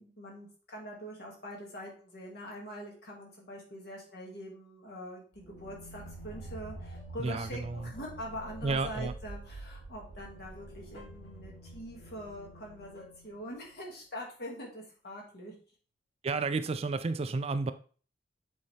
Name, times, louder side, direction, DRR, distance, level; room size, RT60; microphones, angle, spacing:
voice 1, 0.0-15.5, equal, 60° left, 2.1 m, -44 dB
sound 1, 5.3-13.9, right 1 dB, 85° left, 3.2 m, -47 dB
voice 2, 7.2-7.9 8.6-9.1 16.2-17.7, right 3 dB, 35° right, 0.4 m, -31 dB
7.7 x 4.1 x 3.4 m
head